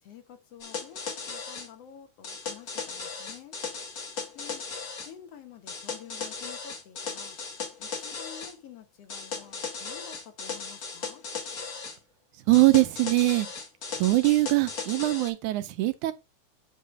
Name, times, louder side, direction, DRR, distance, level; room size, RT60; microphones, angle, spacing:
voice 1, 0.0-3.6 4.3-4.6 5.0-7.4 7.8-11.2, left 9 dB, 60° left, 1.9 m, -49 dB
sound 1, 0.6-1.7 2.2-5.1 5.7-8.5 9.1-12.0 12.5-15.3, left 5 dB, 40° left, 1.4 m, -37 dB
voice 2, 12.5-13.5 14.0-16.1, right 19 dB, 85° right, 2.2 m, -22 dB
8.5 x 3.1 x 6.1 m
omnidirectional pair, 3.5 m